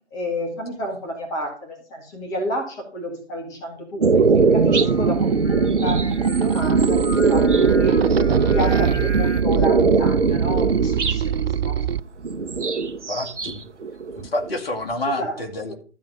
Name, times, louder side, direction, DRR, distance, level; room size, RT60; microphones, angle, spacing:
voice 1, 0.1-8.1 8.4-11.9 15.2-15.4 15.7-15.8, equal, 10° left, 2 dB, 1.9 m, -31 dB
sound 1, 4.0-11.2 12.2-13.6 13.8-14.8, right 4 dB, 80° right, 1.1 m, -20 dB
sound 2, 4.1-12.0, right 9 dB, 60° right, 0.5 m, -25 dB
Singing, 4.4-9.4, equal, 80° left, 2.7 m, -38 dB
voice 2, 12.8-13.7 14.2-15.7, left 1 dB, 55° left, 3 dB, 2.3 m, -28 dB
12.5 x 4.7 x 7.2 m, 0.42 s
figure-of-eight pair, 150°, 35 cm